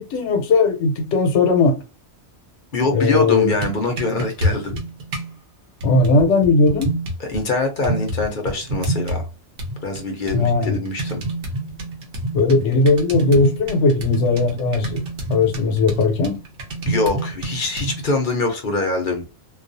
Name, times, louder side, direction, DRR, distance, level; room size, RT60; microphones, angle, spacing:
voice 1, 0.0-1.8 2.9-3.5 5.8-6.9 10.3-10.8 12.3-15.0 15.3-16.4, left 3 dB, 80° left, 1.0 m, -18 dB
voice 2, 2.7-4.8 7.2-9.3 9.8-11.2 16.9-19.2, left 2 dB, 55° left, 0.7 m, -23 dB
sound 1, 3.4-5.3 5.8-7.4 7.8-9.3 9.6-18.1, right 1 dB, 55° right, 0.8 m, -28 dB
2.3 x 2.3 x 2.6 m
omnidirectional pair, 1.2 m